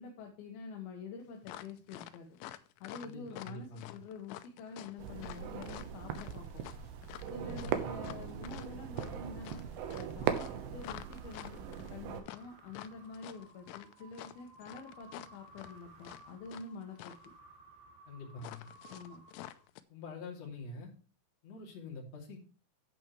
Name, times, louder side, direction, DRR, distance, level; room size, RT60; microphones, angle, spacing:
voice 1, 0.0-2.4 2.8-6.6 7.3-9.7 10.2-11.6 11.9-17.1 18.9-19.2, left 5 dB, 70° left, 1 dB, 3.1 m, -47 dB
sound 1, 1.4-16.7 17.0-17.3 18.4-19.8, left 14 dB, 90° left, 2.8 m, -48 dB
voice 2, 3.0-4.0 7.4-7.9 18.1-18.7 19.9-20.9 21.4-22.4, left 2 dB, 45° left, 0 dB, 3.5 m, -46 dB
sound 2, 5.0-12.2, right 9 dB, 80° right, 3.1 m, -39 dB
sound 3, 10.1-19.9, right 2 dB, 65° right, 4.2 m, -59 dB
10.5 x 8.9 x 3.2 m, 0.37 s
omnidirectional pair, 4.8 m